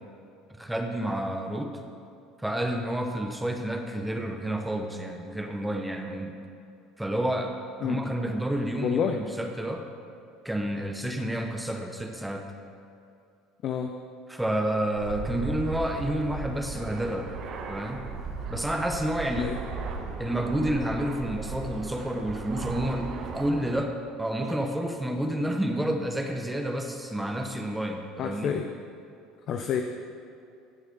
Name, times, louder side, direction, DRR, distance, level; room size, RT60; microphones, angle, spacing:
voice 1, 0.6-1.8 2.4-6.4 7.0-7.5 7.8-9.9 10.4-12.5 14.3-17.3 17.7-18.1 18.5-19.5 20.2-28.5, right 1 dB, 5° right, 3 dB, 1.2 m, -30 dB
voice 2, 7.8-8.1 8.8-9.2 13.6-13.9 19.4-19.6 28.2-28.7 29.5-29.8, left 8 dB, 50° left, 5 dB, 0.7 m, -28 dB
Fixed-wing aircraft airplane, 15.0-23.8, right 4 dB, 50° right, 1.3 m, -37 dB
16.5 x 6.4 x 5.4 m, 2.5 s
hypercardioid pair, 70°, 0 cm